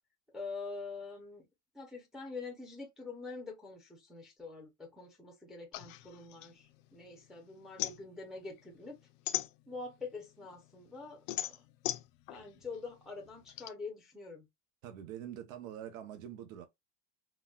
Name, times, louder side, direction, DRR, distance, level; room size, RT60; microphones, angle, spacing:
voice 1, 0.3-1.5 1.7-9.0 9.7-11.7 12.3-14.5, left 4 dB, ahead, 0.5 m, -45 dB
sound 1, 5.7-7.2 7.5-10.1 10.5-13.7, left 15 dB, 70° left, 0.5 m, -39 dB
voice 2, 14.8-16.7, right 10 dB, 85° right, 0.8 m, -45 dB
3.9 x 2.2 x 2.2 m
supercardioid pair, 155°, 39 cm